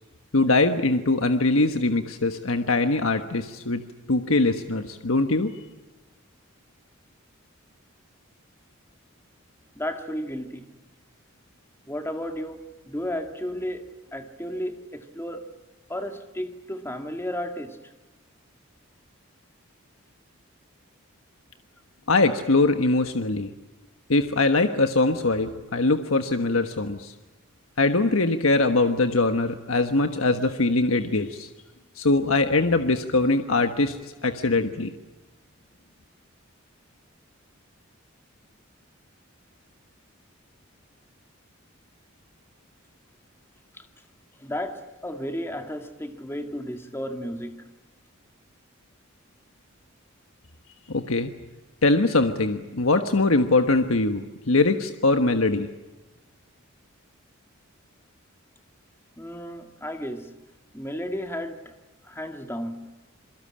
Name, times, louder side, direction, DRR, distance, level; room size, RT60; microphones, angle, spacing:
voice 1, 0.3-5.5 22.1-23.5 24.1-27.1 27.8-31.5 32.0-34.9 50.9-51.3 51.8-55.7, left 2 dB, 80° left, 1.4 m, -22 dB
voice 2, 9.7-10.7 11.9-15.5 15.9-17.8 43.8-43.9 44.4-47.7 59.2-60.4 60.7-61.7 62.0-62.9, equal, 10° left, 2.1 m, -33 dB
27.5 x 23.5 x 8.7 m
head